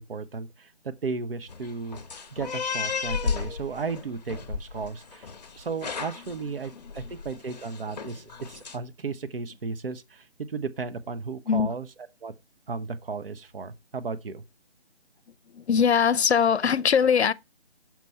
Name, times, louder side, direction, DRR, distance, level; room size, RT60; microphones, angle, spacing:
voice 1, 0.0-2.0 2.3-5.3 5.5-11.9 12.2-12.3 12.7-14.4, right 4 dB, 60° right, 0.9 m, -34 dB
sound 1, 1.5-8.8, left 5 dB, 40° left, 0.9 m, -34 dB
voice 2, 15.5-17.3, left 7 dB, 70° left, 0.6 m, -21 dB
6.1 x 4.2 x 5.6 m
figure-of-eight pair, 155°, 33 cm